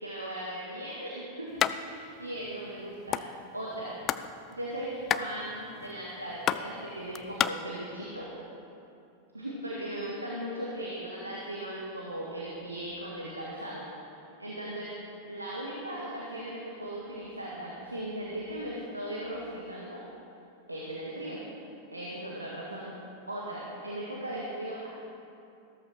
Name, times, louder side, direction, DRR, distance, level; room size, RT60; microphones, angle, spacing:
voice 1, 0.0-3.2 3.5-4.0 4.5-8.3 9.3-13.9 14.4-14.9 15.3-20.0 20.7-21.4 21.9-22.9 23.3-24.9, right 1 dB, 85° right, -4 dB, 1.7 m, -38 dB
sound 1, 1.6-1.8 2.1-2.2 2.4-3.3 3.7-4.3 4.6-7.5, left 10 dB, 30° left, 0.4 m, -29 dB
15.0 x 13.5 x 4.4 m, 2.6 s
figure-of-eight pair, 90°, 0 cm